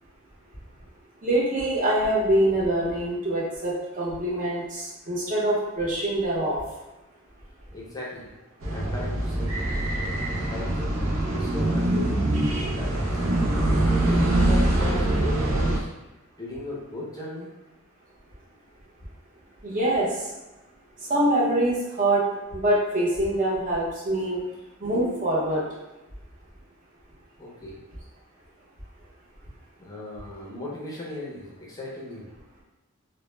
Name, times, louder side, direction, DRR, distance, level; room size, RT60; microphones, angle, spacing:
voice 1, 1.2-6.6 19.6-20.1 21.1-22.2 22.5-24.4 24.8-25.6, right 1 dB, 40° right, -5 dB, 0.7 m, -24 dB
voice 2, 7.7-8.3 8.7-9.6 10.5-11.0 11.3-13.2 13.9-15.9 16.4-17.5 27.4-27.8 29.8-32.3, left 2 dB, 15° left, -4 dB, 0.5 m, -37 dB
sound 1, 8.6-15.8, right 1 dB, 90° right, 0.5 m, -24 dB
2.0 x 2.0 x 3.1 m, 1.0 s
head